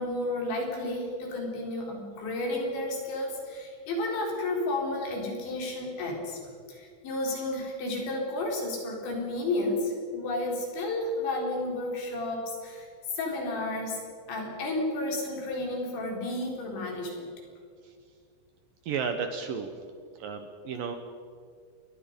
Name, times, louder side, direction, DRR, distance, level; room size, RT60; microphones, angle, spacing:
voice 1, 0.0-6.4 6.7-12.9 13.2-14.0 14.3-17.3, left 2 dB, 85° left, 0 dB, 6.6 m, -32 dB
voice 2, 18.9-19.7 20.2-21.0, right 6 dB, 65° right, 7 dB, 2.4 m, -32 dB
28.0 x 22.0 x 5.3 m, 2.1 s
omnidirectional pair, 5.1 m